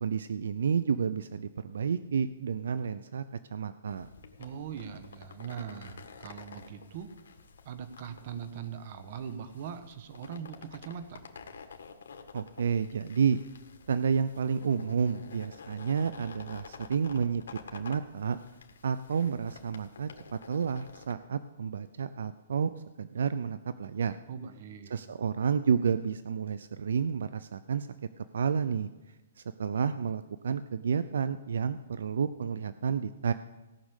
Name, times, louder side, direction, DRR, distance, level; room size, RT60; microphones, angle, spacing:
voice 1, 0.0-3.2 3.5-4.1 12.3-13.4 13.9-17.4 17.7-18.4 18.8-20.1 20.5-22.7 23.0-24.2 24.9-27.9 28.2-28.9 29.4-33.3, right 6 dB, 75° right, 13 dB, 0.5 m, -30 dB
sound 1, 3.9-21.1, left 5 dB, 75° left, 1.7 m, -50 dB
voice 2, 4.4-7.1 7.6-11.3 24.3-25.0, right 8 dB, 45° right, 10 dB, 1.3 m, -41 dB
17.0 x 6.3 x 8.2 m, 1.1 s
hypercardioid pair, 155°, 0 cm